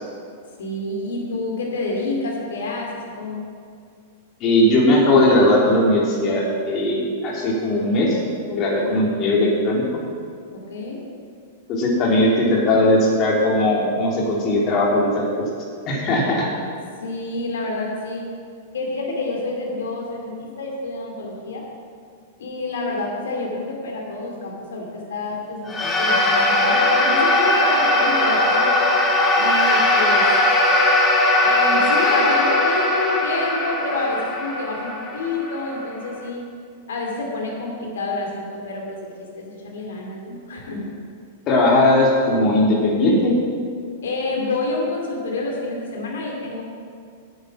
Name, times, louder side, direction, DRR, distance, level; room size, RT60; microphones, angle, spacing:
voice 1, 0.6-3.4 8.7-9.0 10.7-11.0 17.0-18.2 18.7-21.6 22.4-28.7 29.4-30.2 31.4-36.4 36.9-40.8 44.0-46.6, left 2 dB, 70° left, -1 dB, 2.7 m, -28 dB
voice 2, 4.4-8.2 8.5-9.8 11.7-15.4 15.8-16.5 41.5-43.3, left 1 dB, 35° left, -3 dB, 3.1 m, -18 dB
sound 1, 25.7-36.2, left 1 dB, 20° left, 1.6 m, -19 dB
9.1 x 8.8 x 6.1 m, 2.2 s
figure-of-eight pair, 100°, 0 cm